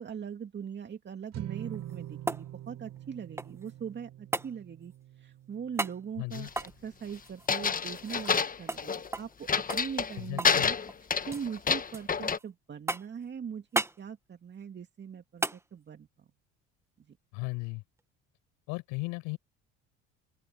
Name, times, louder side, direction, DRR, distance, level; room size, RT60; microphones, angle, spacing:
voice 1, 0.0-4.9 5.2-10.7 11.3-16.3 17.1-17.2, right 7 dB, 35° right, 2.5 m, -41 dB
sound 1, 1.3-7.8, right 12 dB, 60° right, 5.1 m, -45 dB
sound 2, 1.6-3.7 4.3-4.5 5.8-6.0 6.5-8.4 8.7-8.8 9.1-9.4 9.7-10.6 10.9-11.5 11.9-12.4 12.9-13.2 13.7-14.0 15.4-15.6 18.0-18.1, right 2 dB, 10° right, 1.2 m, -35 dB
voice 2, 6.2-6.5 10.1-10.7 17.3-17.8 18.7-19.4, left 26 dB, 75° left, 6.6 m, -36 dB
sound 3, 6.3-6.7 7.5-9.1 9.5-10.2 10.4-12.4, left 6 dB, 25° left, 1.4 m, -28 dB
open air
supercardioid pair, 80°, 31 cm